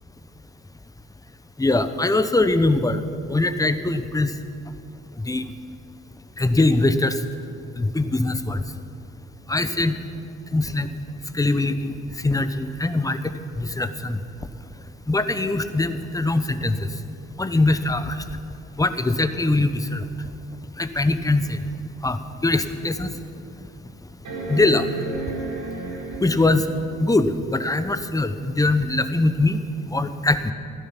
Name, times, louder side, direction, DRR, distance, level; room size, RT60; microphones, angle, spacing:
voice 1, 1.6-3.0 3.3-4.3 5.2-5.4 6.4-7.1 7.8-8.6 9.5-10.0 10.5-10.9 11.3-12.0 12.2-13.2 13.5-14.2 15.1-16.8 17.4-18.2 18.8-20.0 20.8-21.6 22.0-23.1 24.5-24.9 26.2-26.7 27.0-29.6 29.9-30.5, left 2 dB, 10° left, 10 dB, 0.8 m, -22 dB
sound 1, 24.2-26.7 28.4-28.5, right 2 dB, 75° right, 4.7 m, -32 dB
15.5 x 12.0 x 6.0 m, 2.6 s
cardioid pair, 90°, 30 cm